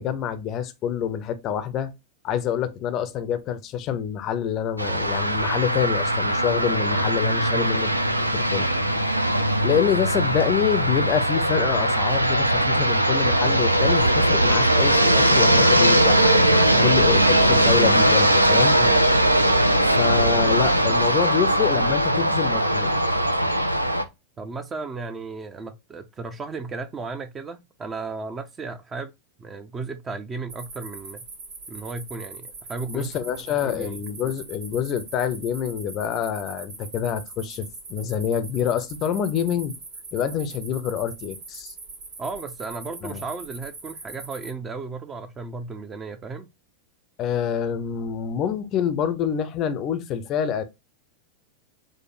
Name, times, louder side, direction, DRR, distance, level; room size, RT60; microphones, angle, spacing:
voice 1, 0.0-1.9 2.2-7.9 8.2-9.3 9.6-18.8 19.8-22.9 32.9-39.8 40.1-41.7 43.0-43.2 47.2-50.6, left 8 dB, 35° left, 0.5 m, -26 dB
sound 1, 4.8-24.0, right 1 dB, 85° right, 0.4 m, -20 dB
voice 2, 24.4-29.1 29.4-31.2 31.7-33.1 33.6-34.0 42.2-46.5, right 4 dB, 20° right, 0.4 m, -34 dB
sound 2, 30.5-44.5, right 3 dB, 55° right, 1.2 m, -41 dB
4.9 x 2.1 x 3.1 m
figure-of-eight pair, 90°, 0 cm